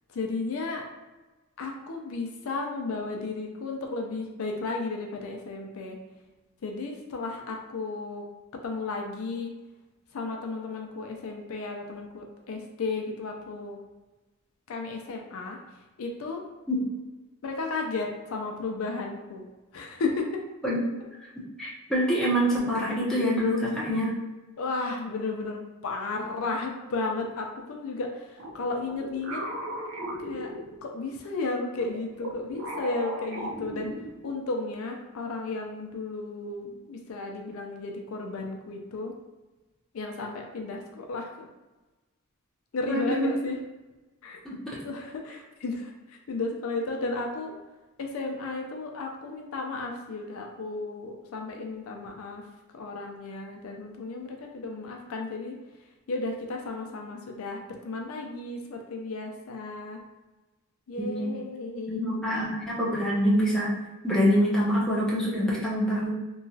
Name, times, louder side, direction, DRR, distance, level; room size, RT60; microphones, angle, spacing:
voice 1, 0.1-0.8 1.6-6.0 6.6-8.3 8.6-9.5 10.1-13.8 14.7-15.6 16.0-16.4 17.4-19.4 19.7-20.4 24.6-29.4 30.2-30.5 30.8-33.9 34.2-39.1 39.9-41.5 42.7-43.6 44.2-44.4 44.8-47.5 48.0-52.4 52.7-55.5 56.1-60.0 60.9-62.2, left 3 dB, 70° left, 2 dB, 0.4 m, -34 dB
voice 2, 21.4-24.1 42.9-43.3 44.4-44.8 61.0-61.2 61.9-63.7 64.0-66.1, equal, 5° left, -7 dB, 0.6 m, -25 dB
sound 1, 28.4-31.1 31.7-34.4, equal, 65° right, 0.5 m, -37 dB
2.9 x 2.3 x 2.6 m, 1.1 s
head